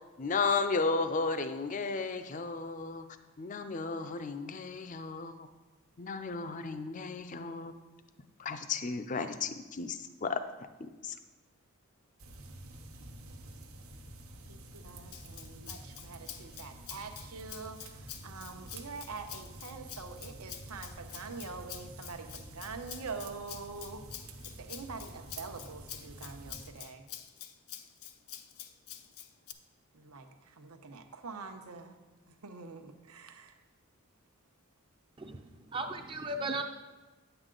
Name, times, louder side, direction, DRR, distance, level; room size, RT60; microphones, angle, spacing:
voice 1, 0.2-3.1 3.4-5.5 6.0-7.7 8.4-10.5 10.8-11.1, left 4 dB, 35° left, 9 dB, 0.4 m, -34 dB
sound 1, 12.2-26.7, right 2 dB, 70° right, 1.0 m, -49 dB
voice 2, 14.5-24.0 24.4-27.1 29.9-31.9 32.3-33.6, right 4 dB, 85° right, 6 dB, 0.9 m, -45 dB
Rattle (instrument), 15.1-29.5, left 10 dB, 80° left, 0.6 m, -47 dB
voice 3, 35.2-36.6, right 2 dB, 20° right, 4 dB, 0.5 m, -36 dB
9.7 x 8.0 x 3.8 m, 1.2 s
head